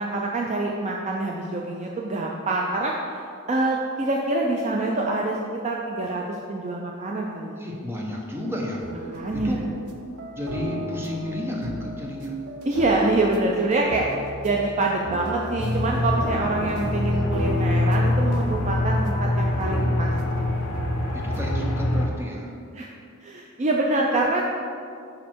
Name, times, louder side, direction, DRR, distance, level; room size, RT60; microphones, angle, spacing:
voice 1, 0.0-3.2 3.5-7.6 9.1-9.6 12.7-20.1 22.7-22.9 23.2-24.5, right 2 dB, 30° right, -1 dB, 0.4 m, -25 dB
voice 2, 7.5-9.7 10.3-12.4 21.1-22.6, left 1 dB, 10° right, -2 dB, 0.9 m, -32 dB
sound 1, 8.8-21.7, right 1 dB, 90° right, 0.7 m, -34 dB
Aircraft, 15.6-22.1, left 1 dB, 70° left, 0.8 m, -24 dB
6.3 x 5.2 x 4.4 m, 2.4 s
head